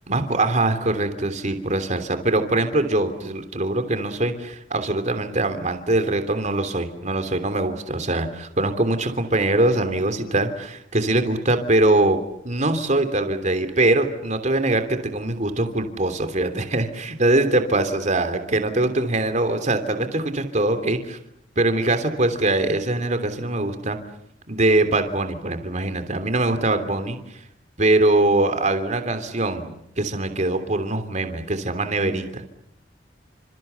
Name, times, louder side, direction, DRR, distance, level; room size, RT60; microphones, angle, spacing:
voice 1, 0.1-21.2 21.6-24.0 24.5-27.2 27.8-32.5, right 2 dB, 40° right, 8 dB, 3.2 m, -22 dB
29.0 x 27.0 x 7.0 m, 0.75 s
head